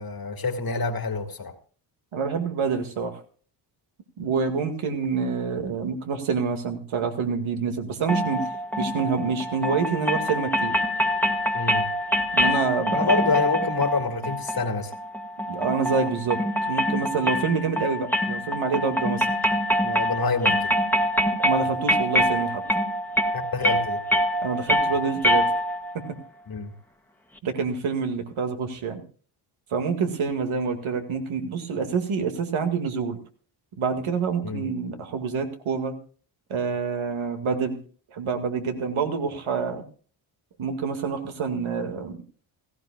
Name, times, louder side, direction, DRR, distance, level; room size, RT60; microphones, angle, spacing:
voice 1, 0.0-1.5 11.5-11.9 12.9-14.9 19.8-20.7 23.3-24.0 26.5-26.7 34.4-34.7, left 4 dB, 45° left, 2.2 m, -27 dB
voice 2, 2.1-3.2 4.2-8.4 8.8-10.7 12.3-13.3 15.5-16.4 16.7-19.3 21.4-22.6 24.4-25.4 27.4-29.0 29.7-33.2 33.8-35.9 36.5-37.8 38.1-39.8 40.6-42.2, right 5 dB, 70° right, 2.1 m, -27 dB
sound 1, 8.1-25.9, equal, 5° left, 1.6 m, -25 dB
16.5 x 15.5 x 2.4 m
supercardioid pair, 55°, 49 cm